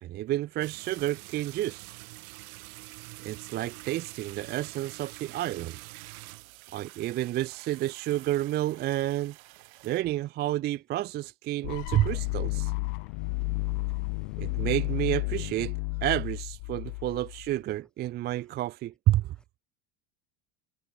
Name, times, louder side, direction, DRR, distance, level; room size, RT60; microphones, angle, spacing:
voice 1, 0.0-1.9 3.2-5.8 6.7-9.4 9.8-12.7 14.4-19.3, right 14 dB, 25° right, 0.5 m, -30 dB
sound 1, 0.6-10.0, right 24 dB, 90° right, 1.3 m, -47 dB
sound 2, 11.6-17.6, left 31 dB, 65° left, 1.2 m, -32 dB
voice 2, 12.9-14.7, left 1 dB, ahead, 1.1 m, -62 dB
cardioid pair, 170°, 41 cm